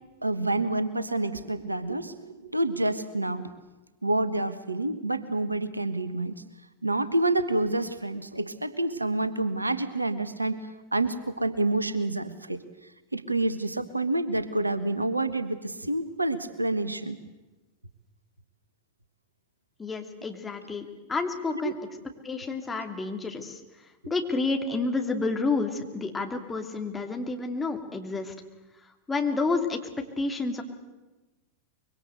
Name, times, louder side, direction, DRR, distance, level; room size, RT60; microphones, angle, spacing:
voice 1, 0.2-3.6 4.0-6.4 6.8-12.6 13.1-17.2 21.6-21.7, right 2 dB, 85° right, 13 dB, 1.3 m, -28 dB
voice 2, 19.8-21.7 22.2-23.6 24.1-28.3 29.1-30.6, left 3 dB, 15° left, 4 dB, 2.9 m, -30 dB
25.0 x 23.0 x 8.1 m, 1.1 s
figure-of-eight pair, 90°, 0 cm